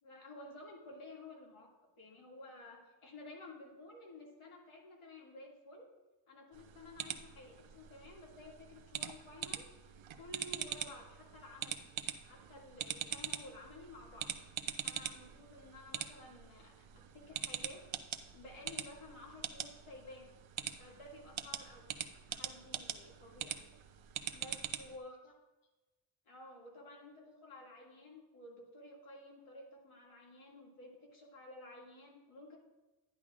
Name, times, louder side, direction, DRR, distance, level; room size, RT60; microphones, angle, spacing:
voice 1, 0.0-5.9 6.3-9.6 10.1-11.9 12.2-14.3 14.8-16.7 17.1-17.8 18.3-20.3 20.8-23.6 24.3-25.3 26.3-32.6, left 2 dB, 85° left, -3 dB, 2.3 m, -53 dB
sound 1, 6.5-25.0, right 9 dB, 75° right, 0.6 m, -44 dB
11.5 x 10.0 x 2.5 m, 1.1 s
wide cardioid pair, 175°, 48 cm